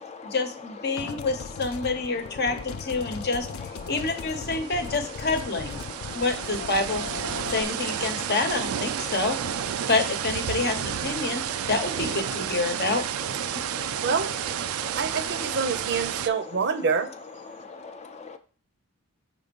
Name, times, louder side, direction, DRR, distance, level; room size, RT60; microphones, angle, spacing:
voice 1, 0.2-3.5 3.9-5.8 6.1-7.1 7.5-9.4 9.9-13.0 13.5-13.6, left 3 dB, 50° left, 7 dB, 0.9 m, -27 dB
voice 2, 0.9-1.3 6.1-6.2 7.5-7.6 9.0-9.1 9.8-9.9 11.2-11.7 13.5-14.1 14.7-15.0 17.5-18.4, left 5 dB, 30° left, 8 dB, 0.5 m, -43 dB
sound 1, 1.0-7.6, left 5 dB, 85° left, 0.5 m, -38 dB
sound 2, 3.4-3.5 3.7-16.3, right 9 dB, 90° right, 0.4 m, -31 dB
voice 3, 14.0-14.3 15.0-17.1, right 5 dB, 55° right, 10 dB, 0.6 m, -26 dB
5.1 x 3.8 x 5.2 m, 0.42 s
head